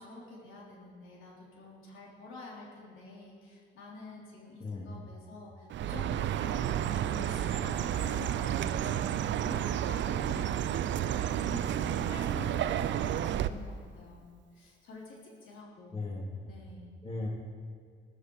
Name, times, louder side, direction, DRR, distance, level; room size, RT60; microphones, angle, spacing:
voice 1, 0.0-14.3 14.5-16.1 16.4-16.9, left 2 dB, 80° left, -4 dB, 3.5 m, -48 dB
voice 2, 4.6-5.0 15.9-16.5 17.0-17.3, left 2 dB, 30° left, -3 dB, 3.3 m, -37 dB
Chirp tweet, 5.7-13.5, right 10 dB, 70° right, 0.6 m, -31 dB
14.0 x 14.0 x 4.8 m, 2.1 s
cardioid pair, 90°, 20 cm